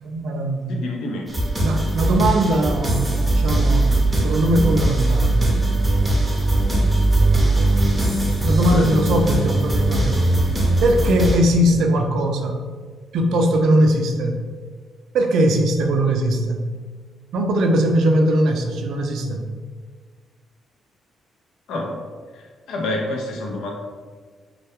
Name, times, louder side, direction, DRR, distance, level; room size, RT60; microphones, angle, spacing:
voice 1, 0.0-0.9 1.6-5.5 8.4-10.4 10.8-12.6 13.1-14.4 15.1-16.7 17.3-19.5, right 1 dB, 75° right, 4 dB, 0.3 m, -20 dB
voice 2, 0.7-1.3 8.7-8.9 21.7-22.0 22.3-23.7, left 2 dB, 80° left, 0 dB, 0.5 m, -28 dB
sound 1, 1.3-11.4, right 1 dB, 15° right, 0.6 m, -20 dB
2.2 x 2.2 x 2.8 m, 1.5 s
cardioid pair, 90°, 0 cm